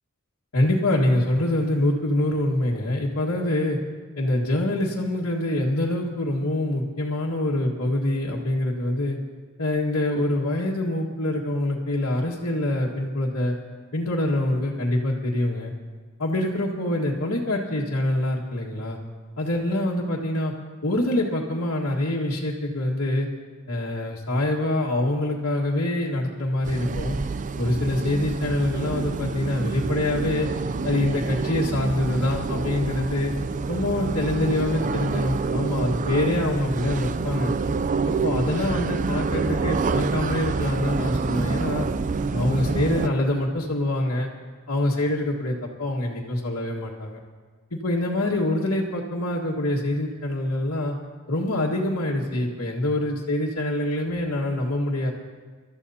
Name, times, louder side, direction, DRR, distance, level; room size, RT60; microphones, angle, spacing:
voice 1, 0.5-3.8 4.2-9.2 9.6-13.5 13.9-15.7 16.2-19.0 19.4-20.5 20.8-23.3 23.7-27.2 27.6-30.5 30.8-33.3 33.7-37.5 38.0-41.9 42.3-44.3 44.7-47.2 47.7-51.0 51.3-55.1, left 1 dB, 85° left, -6 dB, 1.7 m, -25 dB
sound 1, 26.6-43.1, right 4 dB, 35° right, 0.4 m, -27 dB
28.0 x 13.5 x 2.8 m, 1.5 s
head